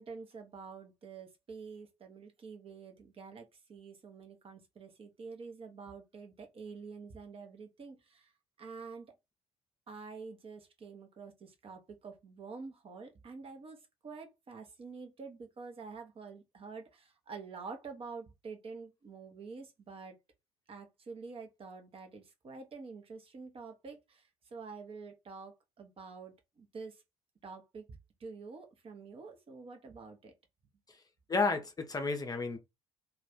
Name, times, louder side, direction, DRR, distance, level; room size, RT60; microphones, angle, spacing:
voice 1, 0.0-8.3 8.6-9.2 9.9-20.2 20.7-27.0 27.4-30.3, right 4 dB, 35° right, 0.8 m, -48 dB
voice 2, 31.3-32.6, left 4 dB, 25° left, 0.6 m, -32 dB
2.4 x 2.3 x 3.6 m
figure-of-eight pair, 50°, 16 cm